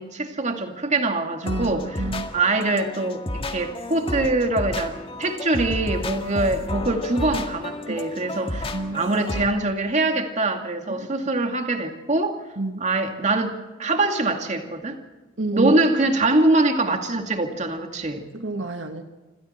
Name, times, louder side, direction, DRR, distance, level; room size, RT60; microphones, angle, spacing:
voice 1, 0.0-2.0 2.3-12.4 12.8-15.0 15.5-18.2, right 2 dB, 40° right, 4 dB, 2.4 m, -23 dB
sound 1, 1.4-9.5, left 1 dB, 30° left, 1.9 m, -32 dB
voice 2, 1.4-2.3 7.9-8.0 8.4-9.0 10.9-11.1 12.6-12.8 15.4-15.8 18.3-19.1, right 2 dB, 75° right, 6 dB, 1.6 m, -29 dB
27.5 x 26.0 x 4.4 m, 1.2 s
head